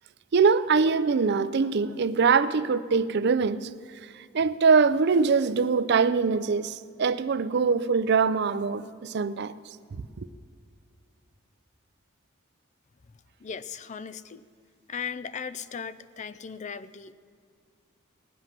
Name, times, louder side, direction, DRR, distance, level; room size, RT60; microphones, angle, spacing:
voice 1, 0.3-3.7 4.3-9.5 10.2-10.3, right 5 dB, 55° right, 0.4 m, -23 dB
voice 2, 13.4-14.4 14.9-17.1, left 6 dB, 35° left, 0.4 m, -37 dB
19.5 x 7.8 x 6.0 m
head